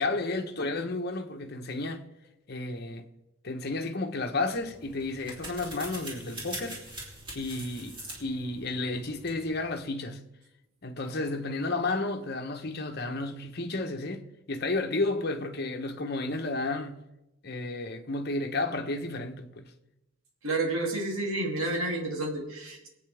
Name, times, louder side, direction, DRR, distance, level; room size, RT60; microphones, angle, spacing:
voice 1, 0.0-2.0 2.5-3.1 3.4-6.8 7.3-10.2 10.8-17.0 17.4-19.7, left 2 dB, 50° left, 1.1 m, -32 dB
sound 1, 4.5-9.8, right 1 dB, 25° right, 3.3 m, -43 dB
voice 2, 20.4-22.9, right 2 dB, 85° right, 2.8 m, -30 dB
23.5 x 8.8 x 3.5 m
head